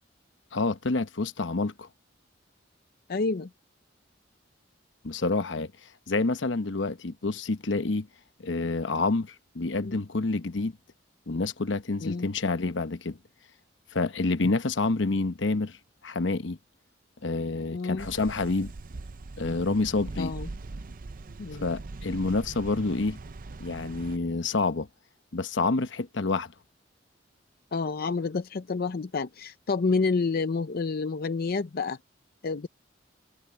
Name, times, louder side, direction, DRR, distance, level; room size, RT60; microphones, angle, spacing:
voice 1, 0.5-1.9 5.0-5.7 6.1-8.1 8.4-10.7 11.3-13.2 13.9-15.8 16.0-16.6 17.2-18.7 19.4-20.3 21.6-23.2 23.6-24.9 25.3-26.5, left 3 dB, 70° left, 0.9 m, -28 dB
voice 2, 3.1-3.5 9.8-10.0 12.0-12.3 17.7-18.1 20.2-20.5 21.4-21.7 27.7-32.0 32.4-32.7, left 4 dB, 55° left, 0.5 m, -29 dB
sound 1, 18.0-24.2, right 3 dB, 45° right, 0.6 m, -41 dB
head